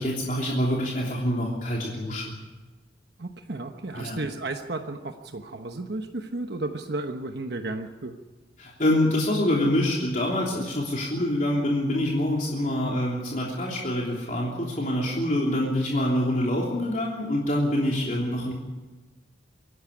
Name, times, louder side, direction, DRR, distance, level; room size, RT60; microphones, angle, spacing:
voice 1, 0.0-2.3 3.9-4.2 8.6-18.5, left 1 dB, 45° left, -3 dB, 3.2 m, -26 dB
voice 2, 3.2-8.2, right 2 dB, 60° right, 5 dB, 1.1 m, -33 dB
25.5 x 11.5 x 9.9 m, 1.2 s
head